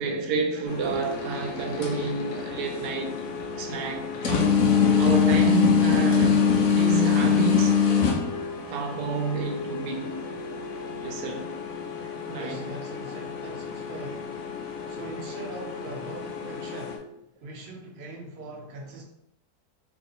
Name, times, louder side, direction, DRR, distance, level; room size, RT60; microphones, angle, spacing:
voice 1, 0.0-3.2 3.6-4.7 5.0-7.8 8.7-10.1 11.0-11.6 12.0-12.7, right 5 dB, 85° right, 1.2 m, -30 dB
sound 1, 0.7-17.0, left 6 dB, 65° left, 0.9 m, -25 dB
voice 2, 12.3-14.4 14.9-17.1 17.4-19.0, right 2 dB, 50° right, 0.7 m, -41 dB
2.9 x 2.7 x 3.9 m
omnidirectional pair, 1.7 m